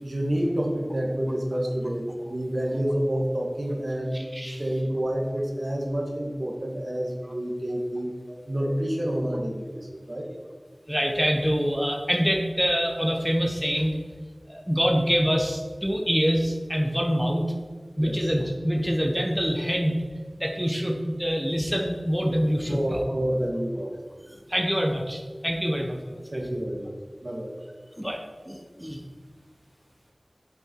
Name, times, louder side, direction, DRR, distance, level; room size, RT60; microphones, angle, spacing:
voice 1, 0.0-8.1 8.5-10.3 18.0-18.3 22.7-24.0 26.3-27.5, right 1 dB, 60° right, 0 dB, 2.1 m, -28 dB
voice 2, 4.1-4.6 8.3-8.4 10.9-14.0 14.5-17.5 18.0-19.9 20.4-23.0 24.5-26.2 28.0-28.2 28.5-29.0, equal, 5° right, 1 dB, 1.3 m, -25 dB
8.9 x 7.9 x 4.9 m, 1.5 s
wide cardioid pair, 45°, 0 cm